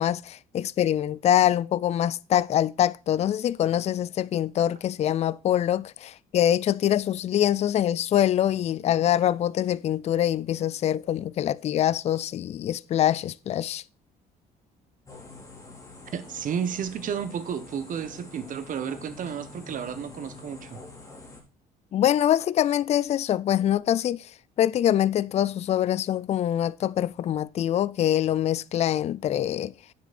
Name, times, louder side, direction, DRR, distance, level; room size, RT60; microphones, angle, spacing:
voice 1, 0.0-13.8 21.9-24.3 24.6-29.7, left 11 dB, 40° left, 0.4 m, -24 dB
sound 1, 15.1-21.4, left 2 dB, 20° left, 3.7 m, -46 dB
voice 2, 16.1-20.8, right 8 dB, 50° right, 1.2 m, -32 dB
9.7 x 7.4 x 4.2 m
cardioid pair, 110°, 17 cm